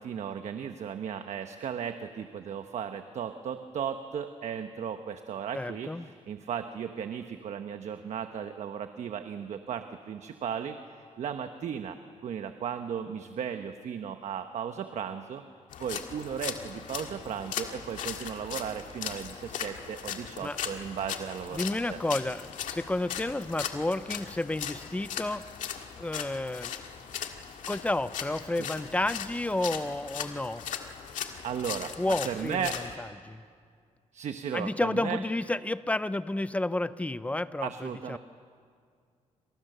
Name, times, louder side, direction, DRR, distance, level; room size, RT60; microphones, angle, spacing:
voice 1, 0.0-10.8 11.2-12.0 12.2-15.4 15.8-22.0 28.6-28.7 31.4-32.0 32.2-32.8 34.1-35.2 37.6-38.2, right 8 dB, 60° right, 8 dB, 1.1 m, -36 dB
voice 2, 5.5-6.1 20.4-20.6 21.5-25.4 26.0-26.7 27.7-30.6 32.0-32.7 33.0-33.4 34.5-38.2, left 2 dB, 10° left, 14 dB, 0.7 m, -31 dB
sound 1, 15.7-32.9, left 8 dB, 85° left, 2.0 m, -38 dB
28.0 x 27.5 x 6.8 m, 2.1 s
cardioid pair, 110°, 13 cm